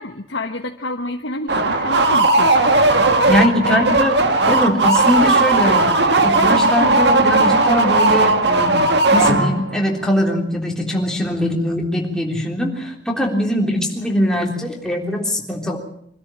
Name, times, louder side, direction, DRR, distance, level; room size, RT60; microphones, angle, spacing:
voice 1, 0.0-2.8 3.6-4.0, left 2 dB, 80° left, 4 dB, 1.2 m, -29 dB
sound 1, 1.5-9.8, right 2 dB, 65° right, 1.9 m, -16 dB
voice 2, 3.3-4.2 4.5-8.9 9.1-15.8, equal, 5° left, 0 dB, 3.5 m, -21 dB
24.5 x 13.0 x 8.9 m, 0.68 s
head